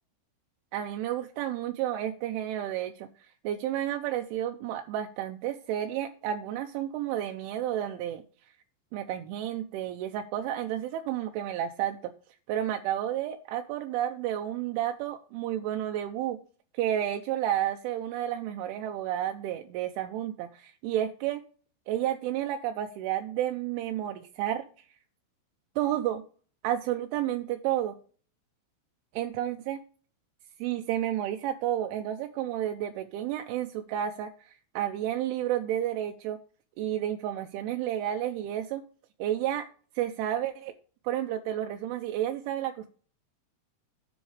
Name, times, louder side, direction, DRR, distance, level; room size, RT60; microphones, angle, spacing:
voice 1, 0.7-8.2 8.9-12.0 12.5-16.4 16.7-21.4 21.9-24.6 25.8-26.2 26.6-28.0 29.2-29.8 30.6-36.4 36.8-38.8 39.2-39.7 40.0-40.7 41.0-42.9, right 11 dB, 85° right, 5 dB, 2.9 m, -31 dB
10.0 x 7.3 x 3.2 m, 0.41 s
omnidirectional pair, 5.9 m